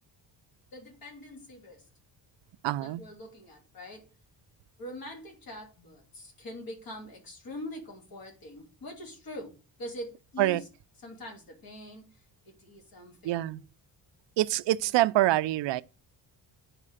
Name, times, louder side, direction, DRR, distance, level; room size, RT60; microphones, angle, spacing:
voice 1, 0.7-1.8 2.8-4.1 4.8-9.5 9.8-10.6 11.0-12.1 12.4-13.6, left 1 dB, 50° left, 3.1 m, -43 dB
voice 2, 2.6-3.0 10.4-10.6 13.2-13.6 14.4-15.8, right 15 dB, 75° right, 0.6 m, -25 dB
9.8 x 5.0 x 4.9 m
cardioid pair, 155°, 44 cm